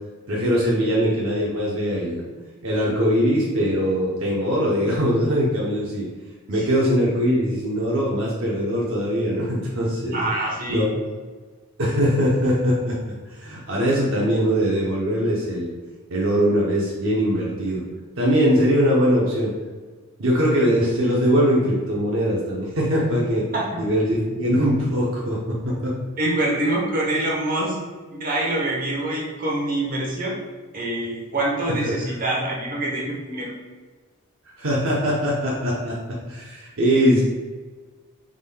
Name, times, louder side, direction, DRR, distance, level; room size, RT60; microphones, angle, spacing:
voice 1, 0.3-2.2 2.6-6.1 6.5-10.2 10.7-10.9 11.8-15.7 16.1-17.8 18.2-19.5 20.2-23.5 23.8-25.9 31.8-32.0 34.6-37.2, equal, 70° right, -5 dB, 0.8 m, -21 dB
voice 2, 10.1-10.9 23.5-23.8 26.2-27.8 28.1-30.4 30.7-33.5, right 1 dB, 40° right, -3 dB, 0.9 m, -25 dB
4.9 x 3.7 x 2.2 m, 1.4 s
head